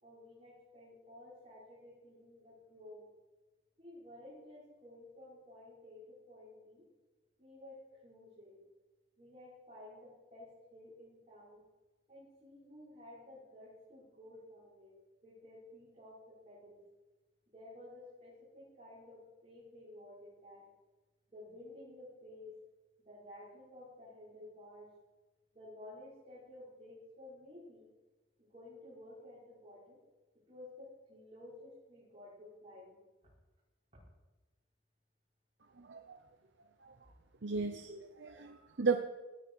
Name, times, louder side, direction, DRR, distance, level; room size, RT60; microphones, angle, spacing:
voice 1, 0.0-3.1 3.8-6.8 7.4-8.6 9.2-11.6 12.1-14.9 15.2-16.8 17.5-20.6 21.3-22.5 23.0-24.9 25.5-27.9 28.4-30.0 30.5-33.0, left 1 dB, 35° right, -9 dB, 5.7 m, -53 dB
voice 2, 35.8-36.2 37.4-39.0, right 4 dB, 70° right, 5 dB, 0.9 m, -35 dB
18.0 x 11.5 x 4.9 m, 1.2 s
head